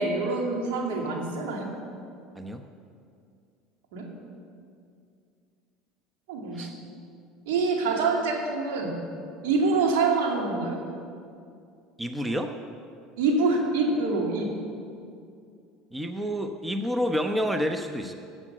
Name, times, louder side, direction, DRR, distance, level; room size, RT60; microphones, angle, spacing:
voice 1, 0.0-1.7 3.9-4.0 6.3-6.7 7.5-9.0 9.4-10.8 13.2-14.5, right 3 dB, 75° right, 0 dB, 2.5 m, -25 dB
voice 2, 12.0-12.6 15.9-18.1, equal, 10° right, 6 dB, 0.9 m, -29 dB
13.0 x 7.7 x 7.9 m, 2.4 s
hypercardioid pair, 80°, 0 cm